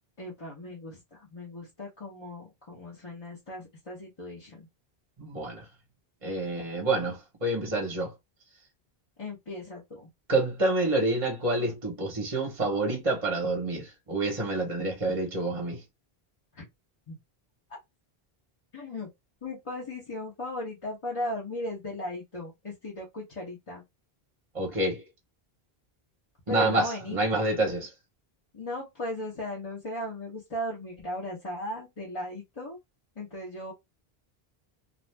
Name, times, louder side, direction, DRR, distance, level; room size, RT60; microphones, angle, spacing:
voice 1, 0.2-4.7 9.2-10.1 16.5-16.7 17.1-17.2 18.7-19.1 19.4-23.8 26.5-27.2 28.5-32.8 33.2-33.7, left 1 dB, 30° left, 0.9 m, -37 dB
voice 2, 5.2-5.7 6.2-8.1 10.3-15.8 24.5-25.1 26.5-27.9, right 2 dB, 35° right, 1.0 m, -28 dB
2.6 x 2.4 x 3.2 m
omnidirectional pair, 1.0 m